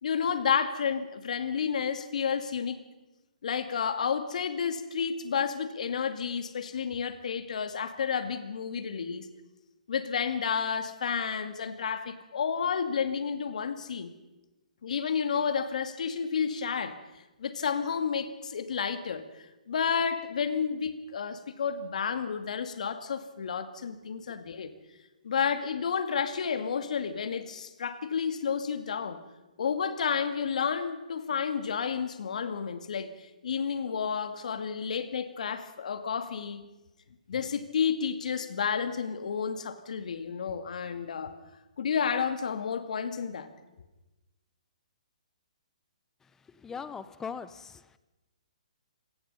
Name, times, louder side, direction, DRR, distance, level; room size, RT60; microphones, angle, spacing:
voice 1, 0.0-2.8 3.4-9.3 9.9-14.1 14.8-17.0 17.4-24.7 25.2-29.2 29.6-36.6 37.3-41.3 41.8-43.5, left 6 dB, 65° left, 9 dB, 2.2 m, -31 dB
voice 2, 46.5-47.8, left 6 dB, 10° left, 15 dB, 0.9 m, -40 dB
27.0 x 18.0 x 5.6 m, 1.0 s
hypercardioid pair, 140°, 4 cm